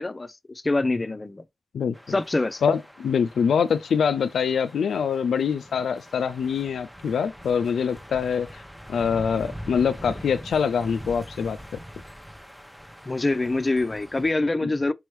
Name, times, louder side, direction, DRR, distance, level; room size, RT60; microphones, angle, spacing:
voice 1, 0.0-1.4 2.1-2.6 13.1-14.9, left 2 dB, 35° left, 0.6 m, -25 dB
sound 1, 1.9-14.3, equal, ahead, 0.8 m, -43 dB
voice 2, 2.6-8.6 8.9-11.6 14.6-14.7, left 6 dB, 85° left, 0.3 m, -24 dB
5.4 x 3.0 x 3.1 m
cardioid pair, 40°, 0 cm